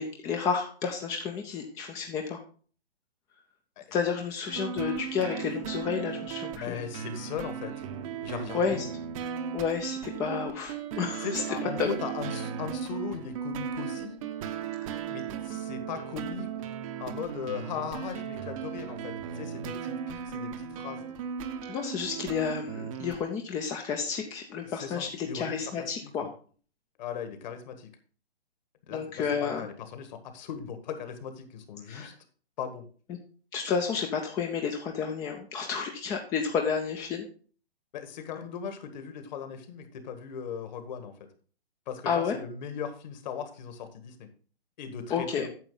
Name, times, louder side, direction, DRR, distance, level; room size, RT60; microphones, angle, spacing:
voice 1, 0.0-2.4 3.9-6.8 8.5-8.9 9.5-11.3 11.8-11.9 14.8-14.9 21.7-26.3 28.9-29.6 31.9-32.1 33.5-37.3 42.1-42.4 45.1-45.5, left 6 dB, 10° left, 3 dB, 0.5 m, -31 dB
sound 1, 4.5-23.2, right 8 dB, 35° right, 0.8 m, -36 dB
voice 2, 6.5-7.8 8.2-8.9 11.2-14.2 15.1-16.5 17.0-21.0 24.6-26.3 27.0-27.9 28.9-32.1 32.6-32.9 37.9-41.1 41.9-44.3 44.8-45.5, left 7 dB, 45° left, 8 dB, 1.6 m, -38 dB
9.2 x 6.8 x 3.8 m, 0.41 s
hypercardioid pair, 130°, 31 cm